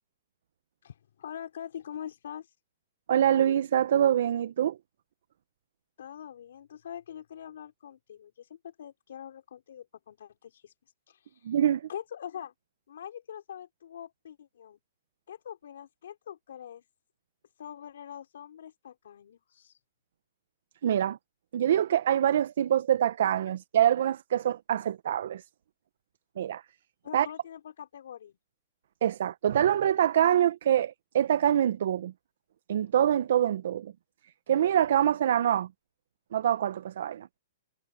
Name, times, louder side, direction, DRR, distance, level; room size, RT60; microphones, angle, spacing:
voice 1, 0.8-2.5 6.0-10.7 11.1-11.6 11.9-12.5 12.9-14.8 15.3-16.8 17.6-19.8 27.0-28.3, left 9 dB, 70° left, 4.8 m, -44 dB
voice 2, 3.1-4.8 11.4-11.9 20.8-21.2 21.5-25.4 26.4-26.6 27.1-27.3 29.0-32.1 32.7-33.9 34.5-35.7 36.3-37.3, right 10 dB, 65° right, 0.7 m, -25 dB
hypercardioid pair, 160°, 0 cm